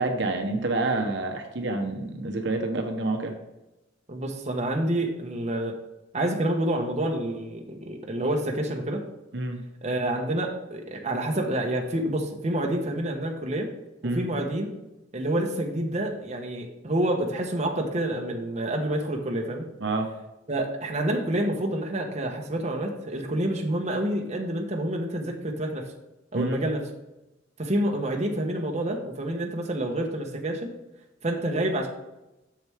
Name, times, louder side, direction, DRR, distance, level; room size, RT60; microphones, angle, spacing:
voice 1, 0.0-3.3 9.3-9.6 14.0-14.3 19.8-20.1 26.3-26.6, right 2 dB, 65° right, 4 dB, 1.0 m, -28 dB
voice 2, 4.1-5.8 6.1-9.0 9.8-13.7 14.0-14.7 15.1-19.7 20.5-25.9 26.3-26.8 27.6-30.7 31.2-31.9, right 1 dB, 35° right, 1 dB, 1.1 m, -28 dB
7.7 x 6.8 x 3.5 m, 0.96 s
head